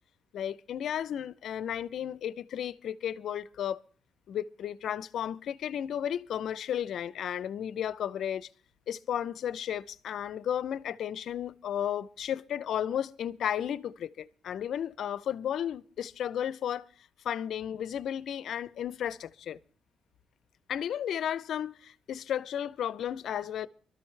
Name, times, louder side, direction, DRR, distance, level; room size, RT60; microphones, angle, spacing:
voice 1, 0.3-3.8 4.3-8.5 8.9-16.9 17.2-19.6 20.7-23.7, left 9 dB, 70° left, 0.6 m, -33 dB
24.0 x 13.0 x 3.3 m
cardioid pair, 90°, 0 cm